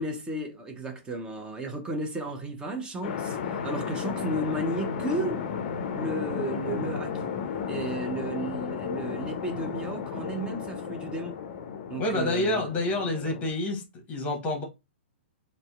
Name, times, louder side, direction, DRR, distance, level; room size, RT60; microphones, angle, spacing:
voice 1, 0.0-5.4 5.9-7.3 7.7-11.4 11.9-12.6, right 2 dB, 15° right, 0.5 m, -33 dB
sound 1, 3.0-13.5, left 7 dB, 50° left, 0.4 m, -33 dB
voice 2, 12.0-13.8 14.1-14.6, left 2 dB, 25° left, 0.9 m, -28 dB
2.6 x 2.0 x 2.3 m
hypercardioid pair, 120°, 6 cm